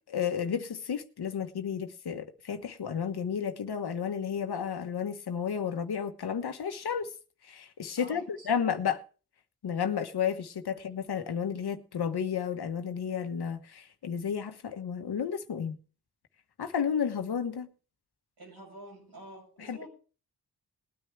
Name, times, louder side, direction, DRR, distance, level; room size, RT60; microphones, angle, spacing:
voice 1, 0.1-7.1 7.4-9.0 9.6-15.8 16.6-17.7 19.6-19.9, left 7 dB, 85° left, 1.2 m, -32 dB
voice 2, 8.0-8.5 18.4-19.9, right 1 dB, 85° right, 6.8 m, -48 dB
20.0 x 9.4 x 3.3 m
cardioid pair, 55°, 38 cm